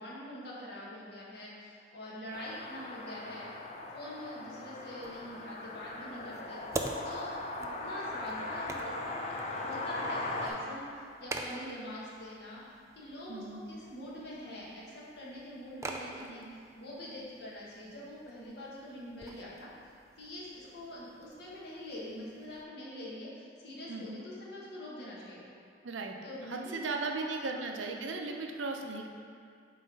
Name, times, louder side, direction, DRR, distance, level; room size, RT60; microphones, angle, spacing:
voice 1, 0.0-3.5 3.9-12.6 12.9-19.7 20.2-25.6 26.2-27.2 27.5-27.7, left 1 dB, 60° left, -6 dB, 1.4 m, -44 dB
sound 1, 2.3-10.5, left 2 dB, 35° left, 0.5 m, -39 dB
sound 2, 5.0-22.6, right 2 dB, 15° right, 0.3 m, -46 dB
voice 2, 13.3-13.6 23.9-24.2 25.8-26.2 26.5-29.1, right 3 dB, 90° right, 3 dB, 0.6 m, -37 dB
7.7 x 3.2 x 5.2 m, 2.3 s
head